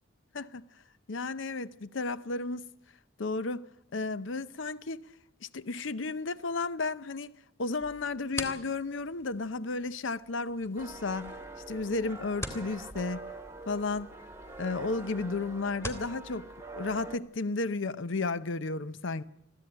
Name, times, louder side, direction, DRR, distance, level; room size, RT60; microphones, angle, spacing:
voice 1, 1.1-2.7 3.2-3.7 3.9-5.0 5.4-7.3 7.6-11.4 11.7-13.3 13.7-14.1 14.6-19.2, left 3 dB, 70° left, 0.7 m, -33 dB
sound 1, 7.8-16.1, left 1 dB, 15° left, 2.2 m, -45 dB
sound 2, 10.8-17.2, right 2 dB, 15° right, 1.2 m, -44 dB
22.5 x 15.0 x 8.9 m
head